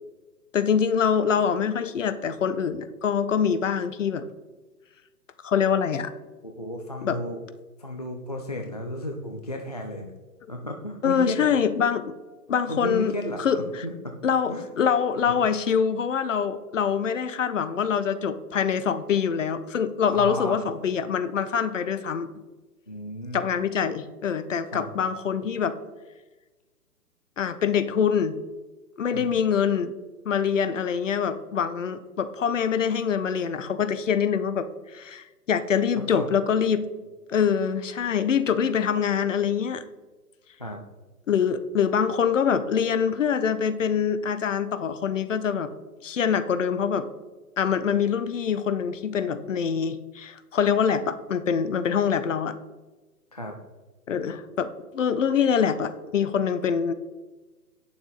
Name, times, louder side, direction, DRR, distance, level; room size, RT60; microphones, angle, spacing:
voice 1, 0.5-4.3 5.4-6.1 7.0-7.2 11.0-12.1 12.5-13.1 13.4-13.6 14.2-22.3 23.3-25.8 27.4-28.4 29.0-29.9 30.2-36.8 37.3-39.8 41.3-45.7 46.0-47.1 47.6-52.6 54.1-56.9, left 7 dB, 50° left, 12 dB, 0.7 m, -24 dB
voice 2, 6.4-7.4 7.8-10.1 10.5-11.5 12.7-13.4 13.8-14.7 15.3-15.4 20.1-20.6 22.9-23.5 24.7-25.0 29.1-29.4 36.0-36.3 40.6-40.8 53.3-53.6, left 1 dB, 30° left, 2 dB, 0.4 m, -33 dB
9.0 x 6.9 x 3.9 m, 1.2 s
figure-of-eight pair, 130°, 48 cm